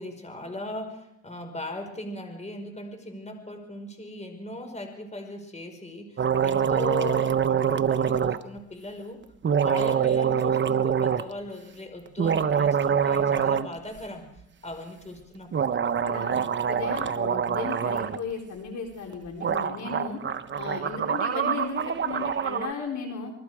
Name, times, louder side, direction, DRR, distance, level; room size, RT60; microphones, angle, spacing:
voice 1, 0.0-9.2 9.6-14.3 14.6-15.7, left 1 dB, 20° left, 5 dB, 5.0 m, -38 dB
sound 1, 6.2-8.4 9.4-11.3 12.1-13.7 14.0-14.1 15.5-18.2 19.1-19.2 19.4-22.7, right 7 dB, 40° right, 1.0 m, -25 dB
voice 2, 16.0-16.4 16.7-20.2 20.6-23.3, left 5 dB, 70° left, 2 dB, 4.5 m, -35 dB
27.5 x 21.0 x 4.9 m, 0.78 s
cardioid pair, 90°, 30 cm